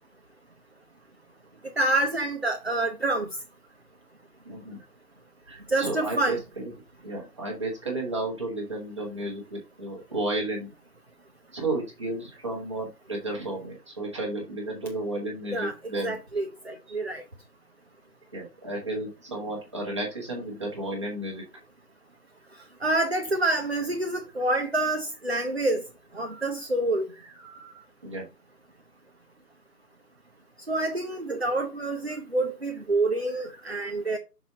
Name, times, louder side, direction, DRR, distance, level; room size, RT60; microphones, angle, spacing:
voice 1, 1.8-3.3 5.7-6.4 15.5-15.7 16.0-17.2 22.8-25.8 26.1-27.1 30.7-34.2, right 2 dB, 40° right, 0.6 m, -27 dB
voice 2, 4.4-4.8 5.5-6.7 7.0-10.7 11.5-16.2 16.9-17.0 18.3-21.4 26.2-26.4 27.4-28.2 32.1-32.2 33.8-33.9, right 2 dB, 20° right, 1.4 m, -33 dB
6.1 x 4.5 x 3.9 m
figure-of-eight pair, 160°, 49 cm